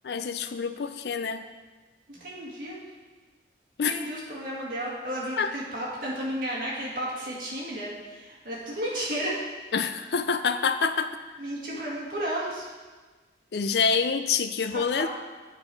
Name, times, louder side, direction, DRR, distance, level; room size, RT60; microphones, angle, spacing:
voice 1, 0.0-1.4 3.8-3.9 5.4-5.5 9.7-11.1 13.5-15.1, left 5 dB, 70° left, 10 dB, 0.4 m, -26 dB
voice 2, 2.1-2.8 3.8-9.4 11.4-12.7 14.7-15.1, right 1 dB, 50° right, -5 dB, 2.0 m, -33 dB
8.5 x 4.8 x 4.7 m, 1.3 s
head